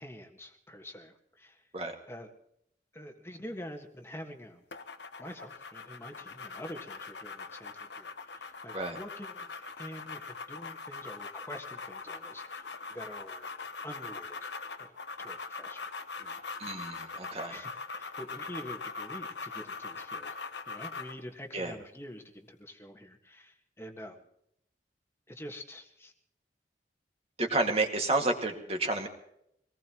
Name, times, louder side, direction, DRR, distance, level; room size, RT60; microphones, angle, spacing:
voice 1, 0.0-1.6 2.1-2.3 2.9-4.6 5.2-13.5 13.8-15.8 16.2-16.4 17.1-20.4 20.7-24.3 25.3-26.1, equal, 15° left, 4 dB, 1.6 m, -46 dB
sound 1, 4.7-21.2, left 4 dB, 90° left, 1.2 m, -42 dB
voice 2, 16.6-17.6 21.5-21.7 27.4-29.1, right 2 dB, 35° right, 3 dB, 2.1 m, -30 dB
24.0 x 19.0 x 3.0 m, 0.76 s
head